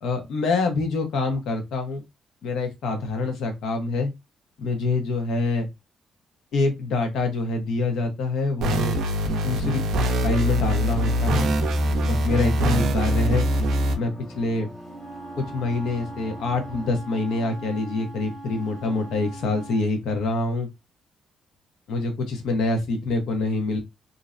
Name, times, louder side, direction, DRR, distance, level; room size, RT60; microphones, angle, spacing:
voice 1, 0.0-2.0 2.4-4.1 4.6-5.7 6.5-9.0 9.4-11.5 12.0-13.5 13.9-14.7 15.5-20.7 21.9-23.8, left 3 dB, 75° left, 4 dB, 0.8 m, -26 dB
sound 1, 8.6-13.9, equal, 75° right, 0.4 m, -23 dB
sound 2, 10.9-16.9, equal, 5° right, 0.5 m, -41 dB
Wind instrument woodwind instrument, 14.8-19.9, right 2 dB, 50° left, 1.2 m, -41 dB
2.5 x 2.1 x 2.3 m, 0.22 s
cardioid pair, 90°, 0 cm